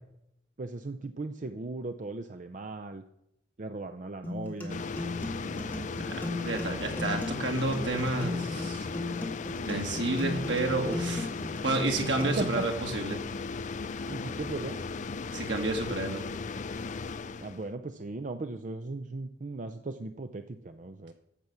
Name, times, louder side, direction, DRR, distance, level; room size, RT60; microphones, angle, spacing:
voice 1, 0.6-3.0 3.6-4.8 5.4-6.0 12.4-12.7 14.1-14.8 17.4-21.1, right 3 dB, 45° right, 8 dB, 0.6 m, -37 dB
sound 1, 4.2-12.2, left 2 dB, 10° left, 2.0 m, -36 dB
sound 2, 4.7-17.7, left 4 dB, 45° left, 0.5 m, -37 dB
voice 2, 6.4-8.9 9.7-11.3 11.6-13.2 15.3-16.2, right 2 dB, 90° right, 3 dB, 2.3 m, -30 dB
14.0 x 6.0 x 7.0 m, 0.82 s
head